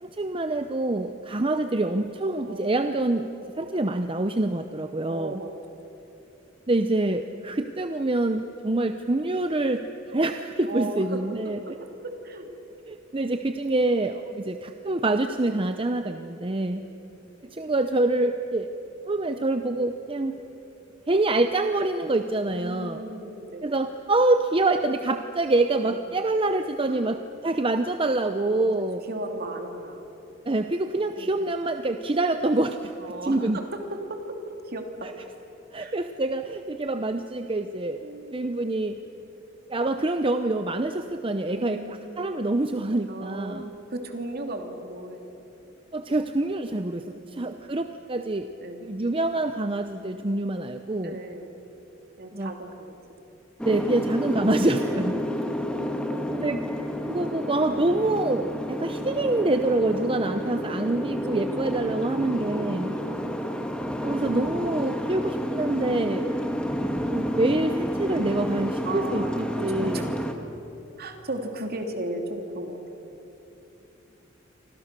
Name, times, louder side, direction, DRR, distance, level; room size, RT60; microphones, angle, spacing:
voice 1, 0.0-3.3 3.6-5.4 6.7-11.6 12.9-16.8 17.5-18.7 19.1-20.4 21.1-23.0 23.6-29.0 30.5-32.9 33.2-33.6 35.7-38.0 38.3-39.0 39.7-43.7 45.9-48.5 48.8-51.2 52.3-52.5 53.6-55.1 56.3-56.6 57.1-62.9 64.0-66.4 67.1-70.0, right 2 dB, 25° right, 8 dB, 0.8 m, -26 dB
voice 2, 2.5-3.0 5.1-5.5 10.7-12.5 16.7-16.9 22.5-23.7 25.8-26.0 26.8-27.2 28.4-30.1 31.2-31.4 33.0-34.4 34.6-35.1 35.8-35.9 38.0-38.4 41.5-42.3 43.1-45.4 47.2-47.4 48.6-48.8 51.0-51.6 52.2-53.0 54.8-56.2 59.9-60.6 61.6-61.7 62.2-62.4 62.8-63.1 66.1-66.4 68.8-70.1 71.0-72.8, right 1 dB, 50° right, 4 dB, 2.9 m, -37 dB
Boat Water vehicle, 53.6-70.3, equal, 5° left, 1.9 m, -30 dB
29.0 x 25.0 x 6.8 m, 3.0 s
head